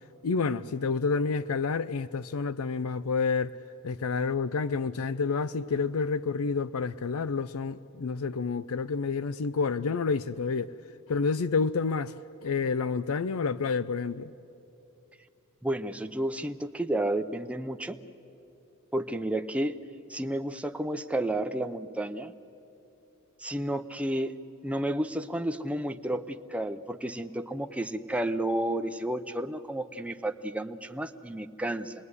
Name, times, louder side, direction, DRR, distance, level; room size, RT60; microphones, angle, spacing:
voice 1, 0.2-3.5 3.8-10.7 11.1-12.1 12.4-14.3, left 4 dB, 75° left, 0.5 m, -29 dB
voice 2, 15.6-18.0 18.9-19.8 20.1-22.3 23.4-24.4 24.6-31.9, right 1 dB, 5° right, 0.7 m, -31 dB
26.5 x 21.0 x 9.7 m
head